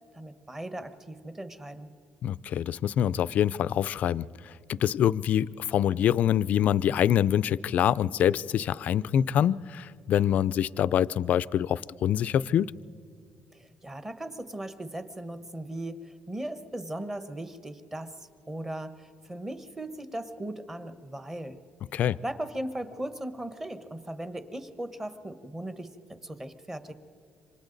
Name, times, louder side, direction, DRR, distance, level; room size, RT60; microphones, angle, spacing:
voice 1, 0.1-1.9 13.5-21.6 22.2-25.9 26.2-26.9, right 1 dB, 15° right, 10 dB, 1.1 m, -38 dB
voice 2, 2.2-4.2 4.7-12.7 21.9-22.2, left 10 dB, 50° left, 18 dB, 0.4 m, -25 dB
27.5 x 25.5 x 4.0 m, 2.5 s
cardioid pair, 145°, 3 cm